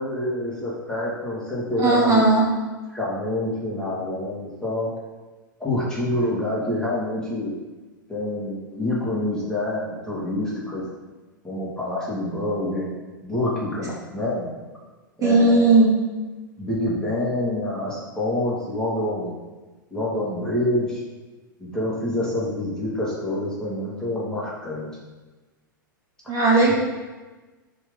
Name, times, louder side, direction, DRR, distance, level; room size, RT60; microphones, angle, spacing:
voice 1, 0.0-2.2 2.9-4.9 5.6-7.5 8.1-10.8 11.4-12.9 13.2-14.5 15.2-15.8 16.6-19.4 19.9-21.0 21.6-24.9 26.7-26.8, left 1 dB, 5° left, -7 dB, 2.3 m, -27 dB
voice 2, 1.8-2.4 15.2-16.0 26.3-26.7, right 2 dB, 30° right, -4 dB, 2.7 m, -16 dB
11.5 x 4.0 x 4.0 m, 1.2 s
figure-of-eight pair, 95°, 11 cm